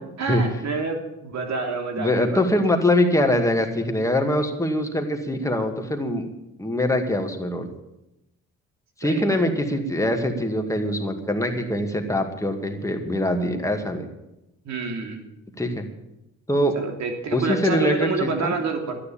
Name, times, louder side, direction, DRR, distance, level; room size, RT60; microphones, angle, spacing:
voice 1, 0.2-2.4 9.0-9.4 14.6-15.2 16.7-19.0, right 4 dB, 65° right, 4 dB, 3.1 m, -28 dB
voice 2, 2.0-6.3 6.6-7.7 9.0-14.1 15.6-15.9 16.5-16.8 17.3-18.5, left 1 dB, 10° left, 4 dB, 2.2 m, -23 dB
12.5 x 9.9 x 8.6 m, 0.90 s
cardioid pair, 90°, 30 cm